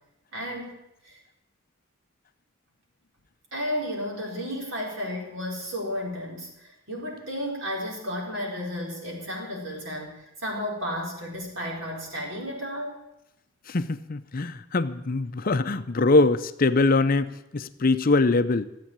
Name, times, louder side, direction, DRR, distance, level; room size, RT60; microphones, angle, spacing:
voice 1, 0.3-0.7 1.0-1.2 3.5-13.0, equal, 65° right, -1 dB, 4.4 m, -33 dB
voice 2, 13.7-18.7, left 3 dB, 45° left, 11 dB, 0.6 m, -23 dB
14.5 x 8.4 x 8.7 m, 0.87 s
head